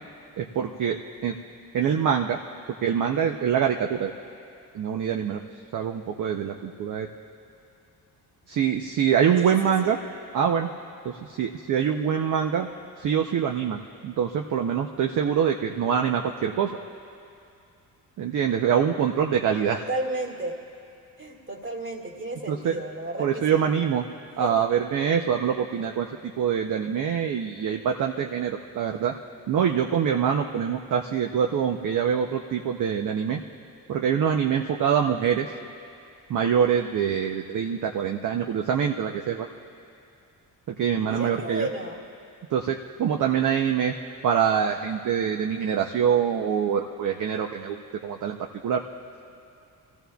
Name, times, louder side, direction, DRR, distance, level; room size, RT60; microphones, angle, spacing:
voice 1, 0.4-1.4 1.7-2.4 2.8-4.1 4.7-5.4 5.7-7.1 8.5-10.0 10.3-10.7 11.0-12.7 13.0-16.7 18.2-19.8 22.5-22.8 23.2-24.0 24.4-26.1 26.4-29.1 29.5-33.4 33.9-35.5 36.3-39.5 40.7-41.7 42.5-43.9 44.2-48.8, right 8 dB, 55° right, 2 dB, 0.7 m, -25 dB
voice 2, 9.4-9.9 19.7-20.6 21.2-23.7 24.4-24.8 41.0-42.0, right 2 dB, 30° right, 0 dB, 2.0 m, -33 dB
25.5 x 15.5 x 2.3 m, 2.6 s
cardioid pair, 120°, 37 cm